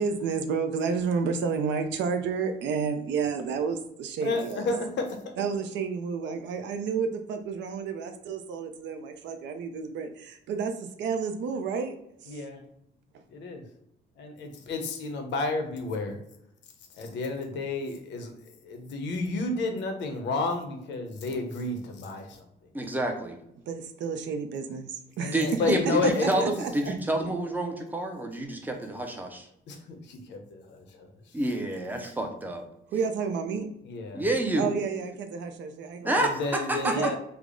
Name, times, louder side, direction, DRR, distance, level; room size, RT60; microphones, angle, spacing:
voice 1, 0.0-4.7 5.4-12.0 12.2-12.3 23.7-25.8 26.0-26.9 27.2-27.3 32.9-33.7 34.6-36.3 36.8-37.2, right 5 dB, 85° right, 7 dB, 0.5 m, -31 dB
voice 2, 4.2-5.3 12.3-12.6 13.3-13.6 14.2-16.2 16.9-22.5 25.2-26.5 29.7-31.4 33.8-34.3 36.2-37.2, left 3 dB, 80° left, 5 dB, 0.7 m, -31 dB
voice 3, 22.7-23.4 25.3-29.5 31.3-32.6 34.1-34.7 36.0-37.2, right 1 dB, 10° right, 3 dB, 0.4 m, -29 dB
3.4 x 2.0 x 3.7 m, 0.78 s
cardioid pair, 155°, 18 cm